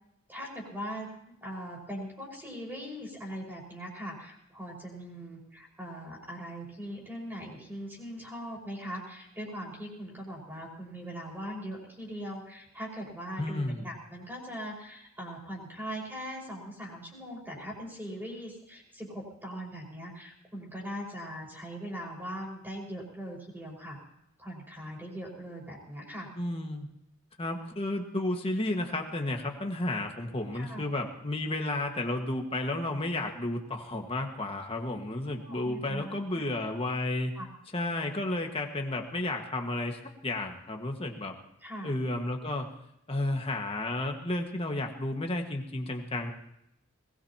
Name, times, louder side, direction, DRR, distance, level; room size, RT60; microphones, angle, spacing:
voice 1, 0.3-24.0 24.4-26.3 30.5-30.8 35.3-36.1 37.3-37.5 41.6-41.9, equal, 10° right, -3 dB, 5.1 m, -40 dB
voice 2, 13.4-13.9 26.4-26.9 27.4-37.3 37.7-41.4 41.8-42.7 43.1-46.3, left 2 dB, 25° left, 3 dB, 1.6 m, -32 dB
21.0 x 19.5 x 2.9 m, 0.79 s
head